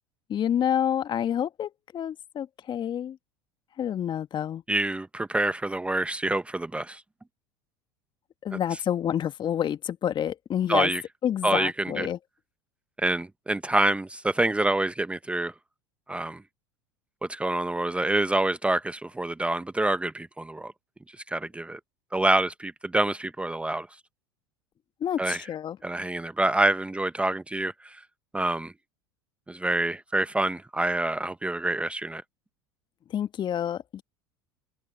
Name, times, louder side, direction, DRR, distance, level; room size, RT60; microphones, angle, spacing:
voice 1, 0.3-3.2 3.8-4.6 8.4-10.9 11.2-12.2 25.0-25.8 33.1-34.0, left 9 dB, 35° left, 1.8 m, -28 dB
voice 2, 4.7-7.0 8.5-8.8 10.7-11.0 11.4-12.1 13.0-15.5 16.1-16.4 17.3-20.7 21.1-21.8 22.1-23.9 25.2-25.4 25.8-28.0 28.3-28.7 29.5-32.2, right 2 dB, 10° right, 1.1 m, -27 dB
figure-of-eight pair, 75°, 14 cm